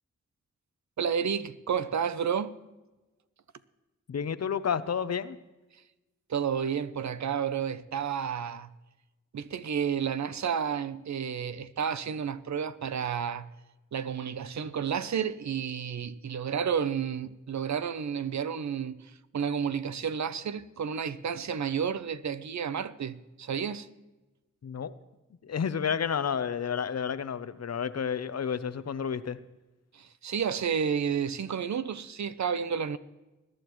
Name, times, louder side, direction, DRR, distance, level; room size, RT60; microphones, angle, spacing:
voice 1, 1.0-2.6 6.3-8.7 9.3-13.5 13.9-23.9 29.9-33.0, right 7 dB, 70° right, 0.7 m, -31 dB
voice 2, 4.1-5.4 24.6-24.9 25.4-29.4, left 7 dB, 60° left, 0.7 m, -30 dB
21.0 x 11.5 x 3.1 m
cardioid pair, 65°, 29 cm